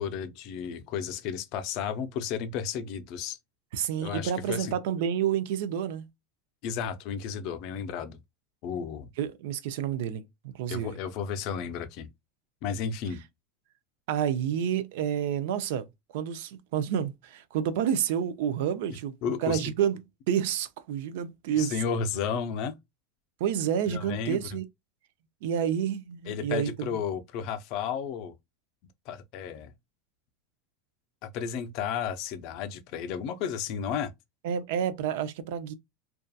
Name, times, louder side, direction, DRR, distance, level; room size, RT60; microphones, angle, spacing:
voice 1, 0.0-3.4 4.0-4.7 6.6-8.2 8.6-9.1 10.7-12.1 12.6-13.2 18.9-19.6 21.6-22.8 23.9-24.5 26.3-28.3 29.1-29.7 31.2-34.1, left 7 dB, 50° left, 0.4 m, -33 dB
voice 2, 3.7-6.1 9.2-10.2 10.5-11.0 14.1-15.9 16.1-19.2 19.4-20.0 20.3-21.7 23.4-24.6 25.4-26.9 34.4-35.7, right 9 dB, 70° right, 0.4 m, -29 dB
2.6 x 2.3 x 2.3 m
supercardioid pair, 150°, 0 cm